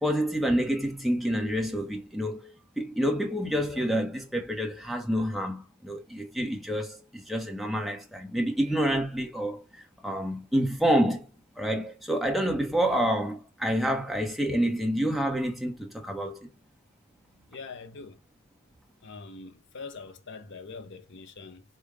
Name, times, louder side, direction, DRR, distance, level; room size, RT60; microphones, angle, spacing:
voice 1, 0.0-11.3 11.6-16.5, equal, ahead, 0.8 m, -28 dB
voice 2, 17.5-18.2 19.0-21.6, left 4 dB, 55° left, 0.5 m, -43 dB
5.1 x 2.2 x 4.7 m
head